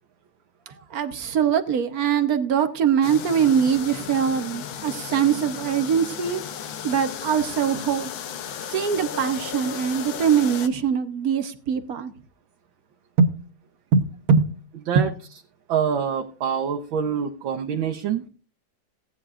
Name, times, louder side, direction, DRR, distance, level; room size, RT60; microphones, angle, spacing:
voice 1, 0.7-6.4 6.8-8.1 8.7-12.1 13.2-13.3 13.9-14.5 14.9-15.1, right 7 dB, 55° right, 1.3 m, -22 dB
sound 1, 3.0-10.7, left 8 dB, 90° left, 1.7 m, -35 dB
voice 2, 15.7-18.2, right 7 dB, 85° right, 1.7 m, -25 dB
18.0 x 10.0 x 2.5 m
omnidirectional pair, 2.1 m